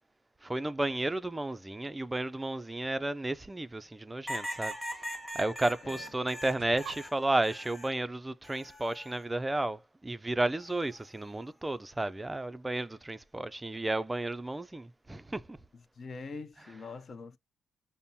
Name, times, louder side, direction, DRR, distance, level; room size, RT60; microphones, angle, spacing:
voice 1, 0.4-4.8 5.3-15.6, right 2 dB, 15° right, 0.4 m, -33 dB
sound 1, 2.7-3.2 4.4-4.5 5.4-5.5 5.8-7.1, right 10 dB, 90° right, 0.5 m, -49 dB
sound 2, 4.3-8.0 8.4-9.2 10.6-11.0, equal, 5° left, 1.1 m, -41 dB
voice 2, 15.7-17.4, left 4 dB, 45° left, 0.6 m, -44 dB
5.3 x 2.1 x 2.7 m
cardioid pair, 90°, 0 cm